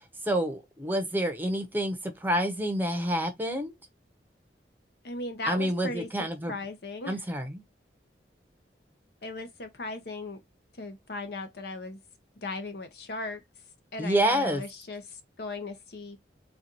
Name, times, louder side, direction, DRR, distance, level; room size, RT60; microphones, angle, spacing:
voice 1, 0.3-3.7 5.5-6.5 7.1-7.6 14.0-14.6, right 1 dB, 10° right, 0.7 m, -28 dB
voice 2, 5.0-7.2 9.2-10.4 10.8-12.0 12.4-13.4 13.9-16.2, left 3 dB, 65° left, 0.8 m, -37 dB
4.1 x 2.3 x 3.0 m
head